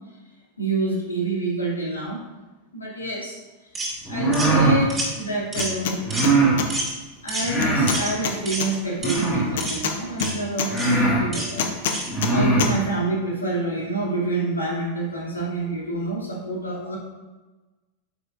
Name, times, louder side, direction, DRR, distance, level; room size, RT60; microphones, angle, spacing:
voice 1, 0.6-2.2 2.7-3.4 4.1-6.0 7.2-11.7 12.3-17.0, right 2 dB, 80° left, -4 dB, 2.5 m, -27 dB
sound 1, 3.8-4.0 4.3-4.5 4.9-5.1 5.5-5.8 6.1-6.3 6.7-6.9 7.3-7.5 7.9-8.1 8.5-8.7 9.0-9.3 9.6-9.8 10.2-10.4 10.8-11.0 11.3-11.5 11.9-12.1, right 2 dB, 15° right, 2.3 m, -29 dB
sound 2, 4.0-4.8 6.0-6.6 7.4-8.0 9.0-9.6 10.3-10.4 10.7-11.2 12.0-12.7, right 3 dB, 20° left, 2.3 m, -21 dB
sound 3, 5.5-6.0 6.2-6.7 7.6-8.7 9.6-10.7 11.6-12.3 12.6-12.7, left 7 dB, 55° left, 0.8 m, -26 dB
9.8 x 6.9 x 2.5 m, 1.2 s
figure-of-eight pair, 90°, 0 cm